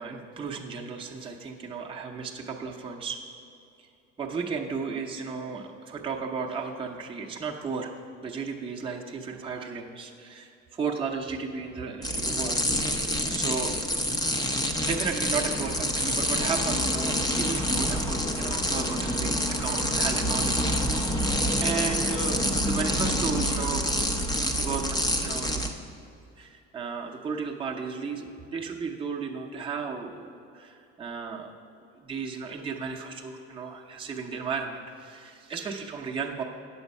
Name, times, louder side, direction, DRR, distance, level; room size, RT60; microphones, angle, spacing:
voice 1, 0.0-3.2 4.2-7.9 8.2-12.6 13.3-13.8 14.8-20.7 21.0-21.1 21.6-24.1 24.4-25.6 26.4-31.5 32.0-36.4, right 5 dB, 20° right, -1 dB, 0.8 m, -34 dB
sound 1, 12.0-25.7, equal, 15° left, 0.7 m, -27 dB
8.7 x 7.1 x 5.4 m, 2.6 s
cardioid pair, 115°, 29 cm